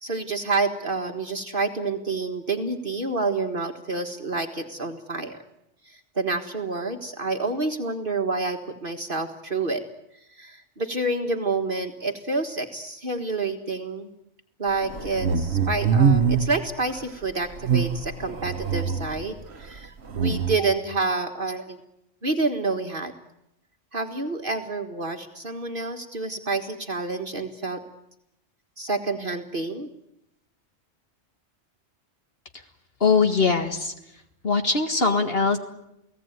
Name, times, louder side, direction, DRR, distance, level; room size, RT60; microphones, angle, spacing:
voice 1, 0.0-5.4 5.9-9.8 10.4-14.1 14.6-21.8 22.2-23.1 23.9-27.8 28.8-29.9, right 3 dB, 50° right, 4 dB, 1.8 m, -28 dB
sound 1, 14.9-16.6 17.6-19.2 20.1-20.6, right 6 dB, 65° right, 1.5 m, -23 dB
voice 2, 33.0-33.9 34.4-35.6, left 4 dB, 55° left, 6 dB, 2.0 m, -21 dB
29.5 x 18.0 x 9.3 m, 0.84 s
omnidirectional pair, 1.2 m